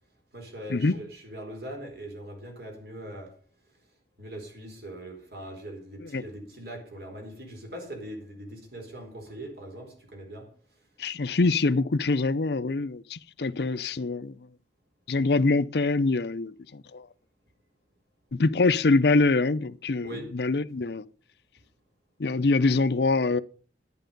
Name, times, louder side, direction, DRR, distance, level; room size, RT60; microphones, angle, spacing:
voice 1, 0.3-3.4 4.2-10.5 20.0-20.3, right 1 dB, 65° right, 4.1 m, -41 dB
voice 2, 11.0-14.4 15.1-17.1 18.3-21.0 22.2-23.4, left 3 dB, 65° left, 0.6 m, -24 dB
11.5 x 9.9 x 5.3 m
head